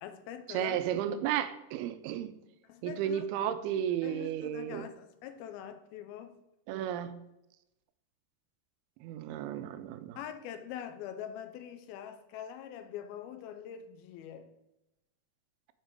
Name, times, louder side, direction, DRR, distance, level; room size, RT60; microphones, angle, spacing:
voice 1, 0.0-1.2 2.6-3.3 4.0-6.4 10.2-14.5, left 9 dB, 80° left, 2.5 m, -44 dB
voice 2, 0.5-2.3 2.8-4.9 6.7-7.2 9.0-10.2, right 10 dB, 85° right, 2.5 m, -33 dB
6.8 x 6.4 x 4.6 m
omnidirectional pair, 4.4 m